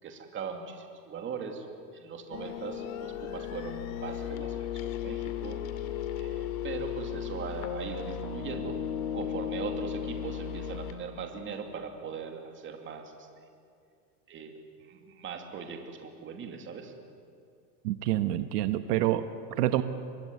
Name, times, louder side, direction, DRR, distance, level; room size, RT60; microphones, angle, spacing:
voice 1, 0.0-1.7 1.9-5.6 6.2-8.8 9.1-13.6 14.3-16.9, right 6 dB, 25° right, 4 dB, 2.7 m, -40 dB
sound 1, 2.3-10.9, left 9 dB, 60° left, 2.5 m, -35 dB
voice 2, 17.8-19.8, right 13 dB, 80° right, 10 dB, 1.3 m, -27 dB
25.0 x 21.0 x 9.5 m, 2.3 s
supercardioid pair, 155°, 47 cm